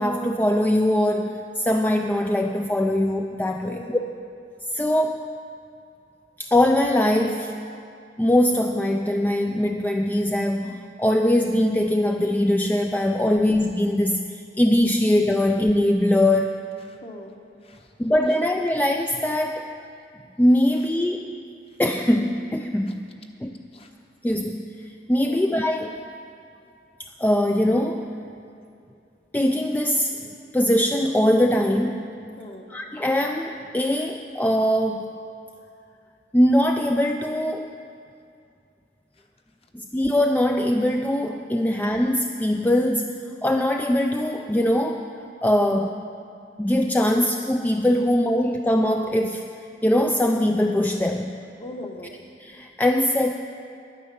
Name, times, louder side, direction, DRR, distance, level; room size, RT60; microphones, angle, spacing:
voice 1, 0.0-3.8 4.7-5.2 6.4-7.5 8.2-16.6 18.0-19.6 20.4-21.3 21.8-23.1 23.4-23.6 24.2-24.8 25.1-26.0 27.2-28.1 29.3-30.2 30.5-32.0 32.7-35.1 36.3-37.7 39.7-45.1 45.4-45.9 46.6-49.5 49.8-51.3 52.4-53.3, left 1 dB, 10° left, 4 dB, 0.4 m, -22 dB
voice 2, 3.6-4.1 7.7-7.9 13.2-13.4 16.8-17.4 17.6-17.9 18.3-18.4 22.9-23.0 23.7-23.9 25.2-25.4 32.4-32.7 45.7-46.0 51.6-52.2, left 1 dB, 35° left, 3 dB, 1.1 m, -40 dB
10.5 x 9.8 x 6.9 m, 2.5 s
head